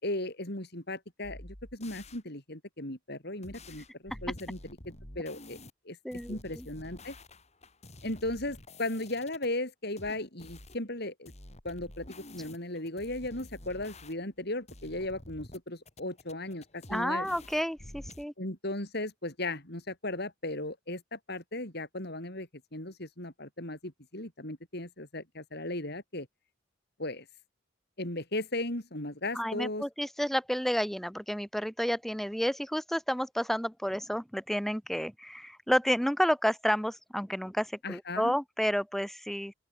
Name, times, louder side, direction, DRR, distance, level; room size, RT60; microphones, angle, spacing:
voice 1, 0.0-5.6 5.8-6.0 6.3-7.1 8.0-11.3 11.6-17.3 18.4-26.3 27.0-27.2 28.0-29.8 37.8-38.3, left 2 dB, 55° left, 6.1 m, -36 dB
sound 1, 1.2-2.2 3.4-5.7 6.1-9.5 10.0-10.8 11.3-14.4 14.7-15.6 15.9-18.2, left 1 dB, 35° left, 5.5 m, -49 dB
voice 2, 6.0-6.7 16.9-18.3 29.3-39.5, equal, ahead, 1.5 m, -30 dB
open air
head